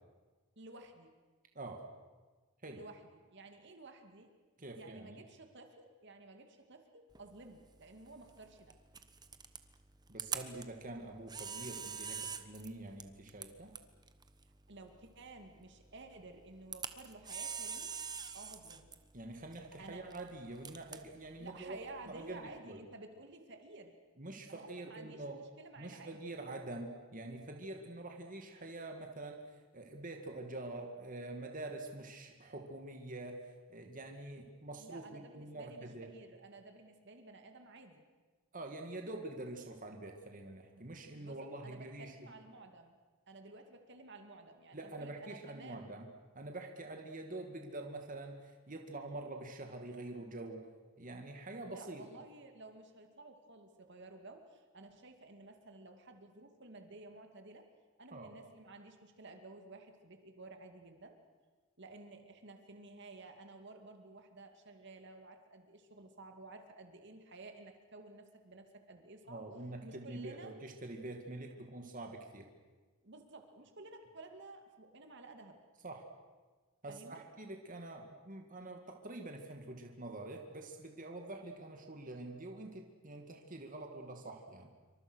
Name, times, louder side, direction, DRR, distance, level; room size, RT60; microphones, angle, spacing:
voice 1, 0.6-1.1 2.7-4.3 4.8-8.8 14.7-18.0 18.3-18.9 19.8-20.1 21.4-23.9 24.5-26.4 34.8-38.0 40.7-40.8 41.1-43.0 43.3-46.0 51.7-57.7 58.0-61.2 61.8-69.4 69.8-70.5 71.8-71.9 73.0-75.6 76.9-77.2, right 2 dB, 55° right, 5 dB, 2.4 m, -53 dB
voice 2, 1.5-1.9 2.6-2.8 4.6-5.2 10.1-13.7 19.1-21.8 22.1-22.8 24.2-25.4 25.8-29.4 29.7-36.1 38.5-42.3 44.7-46.1 46.3-50.7 51.0-52.0 58.1-58.3 69.3-72.5 75.8-76.1 76.8-84.7, right 2 dB, 40° right, 3 dB, 2.3 m, -46 dB
Camera, 7.1-22.6, right 6 dB, 20° right, 1.2 m, -47 dB
27.0 x 25.0 x 6.4 m, 1.3 s
head